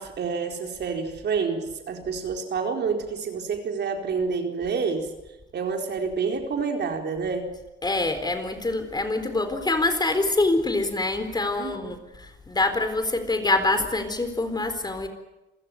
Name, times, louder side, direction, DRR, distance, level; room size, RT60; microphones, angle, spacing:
voice 1, 0.0-5.1 5.5-7.5 11.6-11.9, right 5 dB, 60° right, 3 dB, 4.3 m, -28 dB
voice 2, 7.8-15.1, left 2 dB, 20° left, 9 dB, 4.1 m, -25 dB
27.5 x 16.0 x 9.4 m, 1.0 s
cardioid pair, 90°, 20 cm